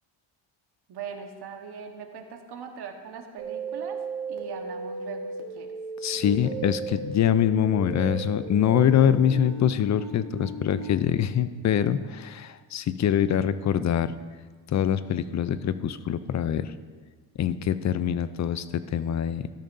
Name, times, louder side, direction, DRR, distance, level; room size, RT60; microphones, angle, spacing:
voice 1, 0.9-4.0 4.3-5.7 6.2-6.3, right 6 dB, 60° right, 4 dB, 1.3 m, -40 dB
sound 1, 3.4-10.9, right 4 dB, 80° right, 1.7 m, -36 dB
voice 2, 6.0-14.1 14.7-16.7 17.4-19.4, left 9 dB, 40° left, 14 dB, 0.5 m, -24 dB
13.0 x 10.5 x 2.6 m, 1.5 s
cardioid pair, 90°, 45 cm